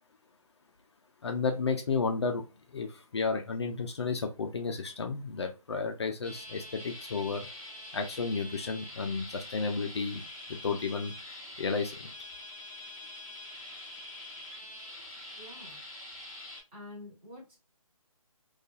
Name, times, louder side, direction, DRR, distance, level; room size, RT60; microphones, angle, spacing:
voice 1, 1.2-2.4 2.7-7.5 7.9-10.2 10.5-11.1 11.6-12.1, left 4 dB, 50° left, 4 dB, 0.4 m, -32 dB
sound 1, 6.2-16.6, left 1 dB, 10° left, 0.6 m, -45 dB
voice 2, 15.3-15.8 16.7-17.6, left 2 dB, 20° right, -4 dB, 0.9 m, -47 dB
2.6 x 2.3 x 2.2 m, 0.29 s
hypercardioid pair, 160°, 19 cm